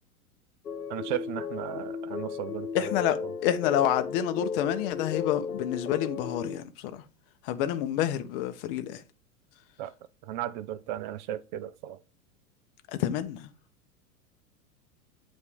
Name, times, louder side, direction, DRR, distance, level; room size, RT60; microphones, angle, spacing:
sound 1, 0.6-6.6, left 5 dB, 90° left, 0.6 m, -35 dB
voice 1, 0.9-2.9 9.8-9.9 10.3-12.0, right 12 dB, 35° right, 0.4 m, -35 dB
voice 2, 2.7-7.0 7.4-9.0 12.9-13.5, left 11 dB, 40° left, 0.7 m, -28 dB
8.1 x 2.7 x 4.9 m
figure-of-eight pair, 90°, 44 cm